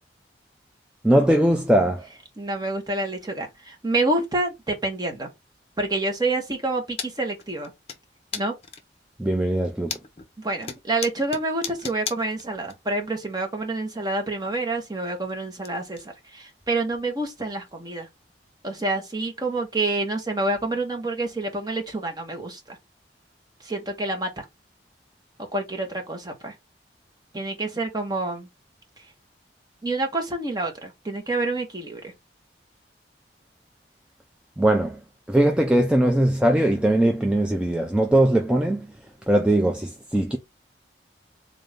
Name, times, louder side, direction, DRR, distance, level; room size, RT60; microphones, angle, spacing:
voice 1, 1.0-2.0 9.2-10.0 34.6-35.0 35.3-38.9 39.3-40.4, right 1 dB, 5° right, 0.4 m, -20 dB
voice 2, 2.4-5.3 5.8-7.7 8.3-8.5 10.4-18.1 18.6-22.8 23.6-24.4 25.5-26.5 27.3-28.5 29.8-32.1, right 2 dB, 20° right, 1.0 m, -28 dB
sound 1, 7.0-7.1 7.4-8.0 8.3-9.0 9.5-10.3 10.6-12.7 13.0-13.1 14.4-14.5 14.7-15.7 15.9-16.0 16.5-16.6 17.0-17.1 17.7-17.8 18.9-19.0, left 6 dB, 35° left, 0.7 m, -35 dB
3.8 x 2.6 x 3.4 m
head